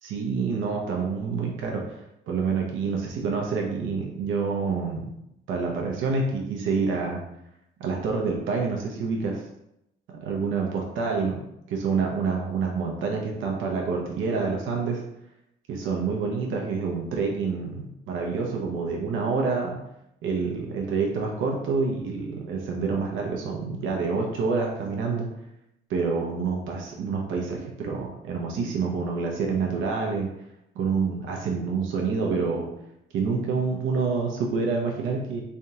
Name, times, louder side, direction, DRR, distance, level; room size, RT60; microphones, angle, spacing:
voice 1, 0.0-1.8 2.3-5.1 5.5-7.2 7.8-9.4 10.1-11.4 11.7-15.0 15.7-19.8 20.2-25.3 25.9-30.3 30.8-32.7 33.1-35.4, right 4 dB, 80° right, 0 dB, 0.8 m, -27 dB
3.5 x 3.4 x 2.8 m, 0.82 s
cardioid pair, 90°, 20 cm